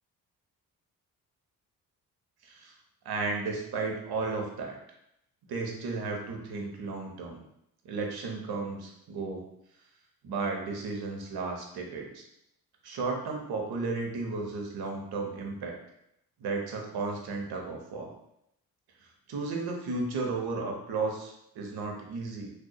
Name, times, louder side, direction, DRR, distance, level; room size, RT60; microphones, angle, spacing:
voice 1, 2.4-2.7 3.0-4.8 5.5-7.4 7.8-9.4 10.2-12.2 12.8-15.8 16.4-18.1 19.3-22.5, right 3 dB, 60° right, 2 dB, 1.1 m, -34 dB
6.2 x 2.7 x 2.4 m, 0.80 s
hypercardioid pair, 45°, 43 cm